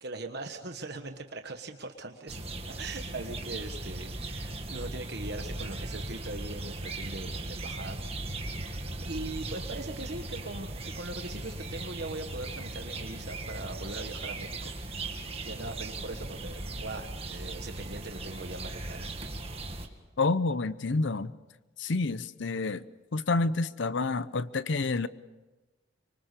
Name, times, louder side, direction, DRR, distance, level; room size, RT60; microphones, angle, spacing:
voice 1, 0.0-2.4 2.7-8.0 9.0-14.7 15.4-19.1, right 2 dB, 55° right, 5 dB, 1.3 m, -40 dB
sound 1, 2.3-19.9, right 2 dB, 30° right, 1.8 m, -38 dB
voice 2, 20.2-21.3 21.8-22.8 23.1-25.1, left 3 dB, 65° left, 15 dB, 0.7 m, -28 dB
25.0 x 24.0 x 6.8 m, 1.1 s
head